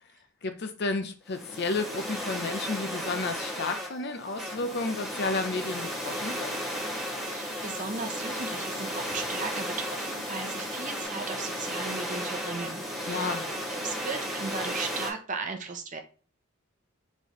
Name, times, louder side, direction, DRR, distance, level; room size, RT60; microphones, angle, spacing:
voice 1, 0.4-6.6 13.0-13.5, left 3 dB, 50° left, 0.6 m, -32 dB
sound 1, 1.3-15.1, equal, ahead, 1.5 m, -34 dB
sound 2, 5.6-11.0, left 1 dB, 15° left, 1.4 m, -47 dB
voice 2, 7.2-13.4 13.7-16.0, right 4 dB, 35° right, 0.7 m, -36 dB
4.5 x 3.5 x 3.0 m
head